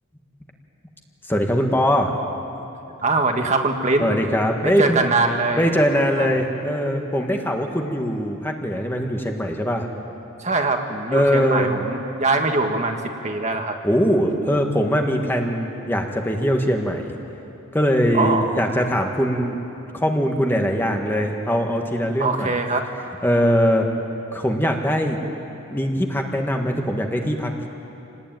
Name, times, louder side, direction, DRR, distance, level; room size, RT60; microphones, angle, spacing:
voice 1, 1.3-2.1 4.0-5.0 5.5-9.9 11.1-11.7 13.8-17.1 17.7-19.6 19.9-22.5 23.2-23.9 24.3-25.2 25.7-27.7, equal, 10° left, 2 dB, 1.6 m, -21 dB
voice 2, 3.0-4.2 4.6-5.7 6.2-6.4 10.4-13.0 13.2-13.8 18.1-18.6 22.2-22.9, right 3 dB, 35° right, 4 dB, 1.6 m, -22 dB
27.0 x 19.5 x 9.2 m, 3.0 s
head